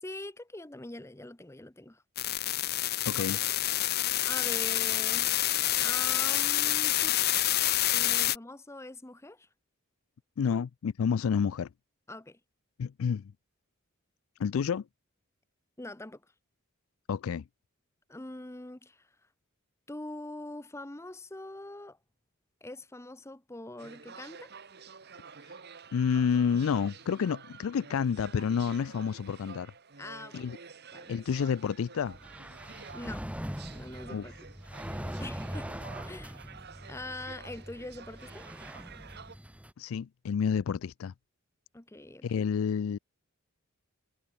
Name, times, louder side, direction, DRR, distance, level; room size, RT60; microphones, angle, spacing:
voice 1, 0.0-2.0 3.2-3.3 4.2-5.4 5.7-7.2 7.9-9.5 10.5-10.6 12.1-12.4 15.8-16.2 18.1-19.2 19.9-22.0 22.6-24.5 30.0-30.6 30.9-31.3 32.9-33.3 33.7-34.3 35.2-35.7 36.0-36.4 36.9-38.5 41.7-42.4, left 2 dB, 15° left, 0.8 m, -43 dB
sound 1, 2.2-8.4, left 14 dB, 50° left, 0.8 m, -27 dB
voice 2, 3.1-3.4 10.4-11.7 12.8-13.2 14.4-14.8 17.1-17.4 25.4-25.6 25.9-29.7 30.3-30.6 31.1-32.2 34.1-34.2 39.8-41.1 42.2-43.0, left 6 dB, 70° left, 0.4 m, -29 dB
sound 2, 23.8-39.4, right 5 dB, 50° right, 1.6 m, -50 dB
sound 3, 32.0-39.7, equal, 5° right, 3.1 m, -42 dB
head